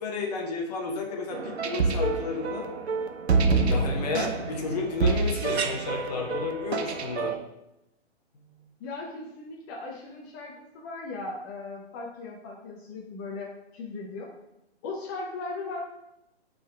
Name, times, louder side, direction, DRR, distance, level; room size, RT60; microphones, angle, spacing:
voice 1, 0.0-2.7 3.6-7.4, left 4 dB, 35° left, 1 dB, 1.0 m, -32 dB
sound 1, 1.3-7.4, right 4 dB, 75° right, 0.9 m, -27 dB
voice 2, 8.8-14.3 14.8-15.8, left 3 dB, 20° left, -2 dB, 0.6 m, -38 dB
8.9 x 3.9 x 3.3 m, 0.87 s
figure-of-eight pair, 130°, 33 cm